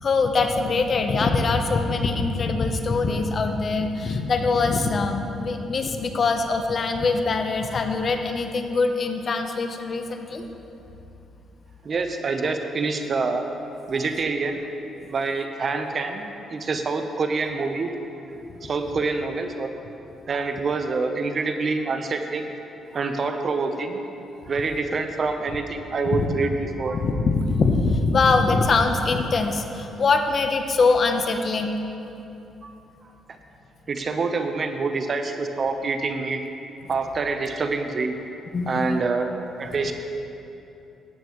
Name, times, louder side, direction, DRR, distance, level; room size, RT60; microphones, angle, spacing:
voice 1, 0.0-10.4 26.1-26.4 26.9-31.7 38.5-38.9, left 3 dB, 45° left, 5 dB, 0.8 m, -23 dB
voice 2, 11.8-13.4 13.9-14.6 15.1-16.2 16.5-17.9 18.6-19.8 20.3-22.5 22.9-24.0 24.5-27.0 32.6-32.7 33.9-36.4 36.9-38.2 38.7-39.3 39.6-39.9, right 4 dB, 45° right, 6 dB, 0.8 m, -26 dB
14.0 x 8.9 x 3.1 m, 2.9 s
cardioid pair, 90°, 0 cm